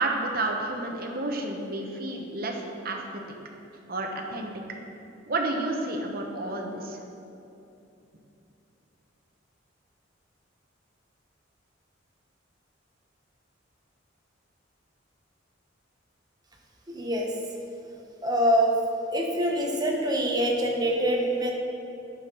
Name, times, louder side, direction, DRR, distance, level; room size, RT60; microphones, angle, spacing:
voice 1, 0.0-2.6 2.8-3.2 3.9-4.5 5.3-7.0, right 2 dB, 50° right, 2 dB, 1.0 m, -30 dB
voice 2, 16.9-17.3 18.2-18.7 19.1-21.5, equal, 20° right, 0 dB, 1.0 m, -25 dB
7.3 x 6.4 x 6.0 m, 2.8 s
head